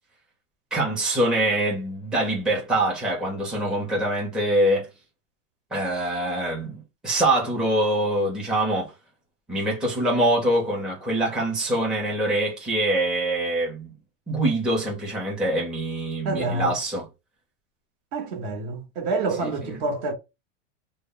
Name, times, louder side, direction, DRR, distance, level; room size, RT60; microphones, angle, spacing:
voice 1, 0.7-4.9 5.7-8.9 9.5-13.9 14.3-17.1 19.4-19.8, right 1 dB, ahead, 0.6 m, -24 dB
voice 2, 16.2-16.7 18.1-20.1, right 3 dB, 45° right, 0.9 m, -27 dB
2.1 x 2.0 x 3.6 m
supercardioid pair, 140°, 38 cm